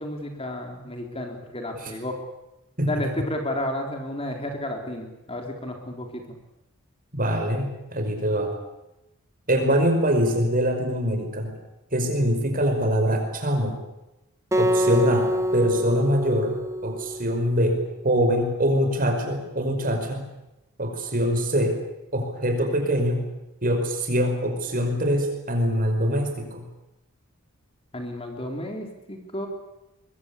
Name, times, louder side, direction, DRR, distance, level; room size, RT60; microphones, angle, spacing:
voice 1, 0.0-2.2 2.9-6.4 27.9-29.5, left 1 dB, 25° left, 3 dB, 3.8 m, -32 dB
voice 2, 7.1-8.5 9.5-11.5 11.9-13.8 14.5-20.3 20.8-21.8 22.1-23.2 23.6-26.6, equal, 40° right, 5 dB, 5.2 m, -24 dB
Acoustic guitar, 14.5-17.8, equal, 15° right, 1.2 m, -26 dB
24.0 x 22.5 x 8.4 m, 0.94 s
head